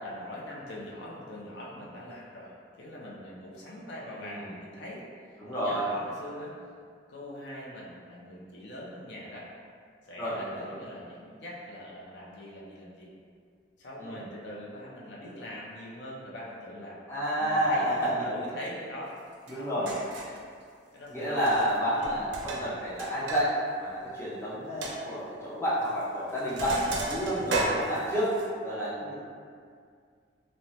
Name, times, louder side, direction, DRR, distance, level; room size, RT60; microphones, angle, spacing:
voice 1, 0.0-2.5 2.8-5.0 5.5-6.5 7.1-9.5 10.1-13.1 13.8-17.0 17.4-19.1 19.5-20.0 20.9-21.5 21.9-22.2 22.6-22.8, left 1 dB, 70° left, -5 dB, 0.5 m, -42 dB
voice 2, 4.2-4.5 5.4-5.9 10.2-10.7 14.0-14.2 17.1-18.3 19.5-19.9 21.1-23.5 23.8-28.3 28.6-29.1, equal, 15° left, -10 dB, 0.6 m, -30 dB
Sink (filling or washing), 19.5-19.6 19.9-20.4 21.4-21.8 22.0-23.4 23.7-23.8 24.3-24.4 24.8-25.0 25.8-26.0 26.3-28.5, right 2 dB, 80° right, 0.4 m, -34 dB
3.0 x 2.1 x 2.7 m, 2.1 s
head